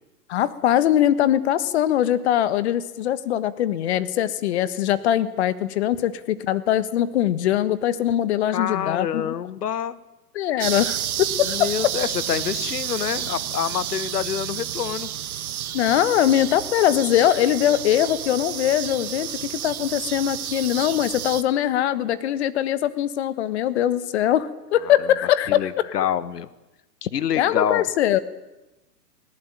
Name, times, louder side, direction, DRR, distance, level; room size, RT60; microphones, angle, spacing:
voice 1, 0.3-9.3 10.3-11.7 15.7-25.9 27.3-28.2, left 11 dB, 45° left, 15 dB, 1.4 m, -22 dB
voice 2, 8.5-10.0 11.4-15.1 24.9-25.0 25.5-26.5 27.0-27.9, left 9 dB, 75° left, 16 dB, 1.5 m, -27 dB
sound 1, 10.6-21.4, right 10 dB, 60° right, 1.6 m, -30 dB
20.0 x 18.0 x 9.1 m, 1.0 s
hypercardioid pair, 150°, 48 cm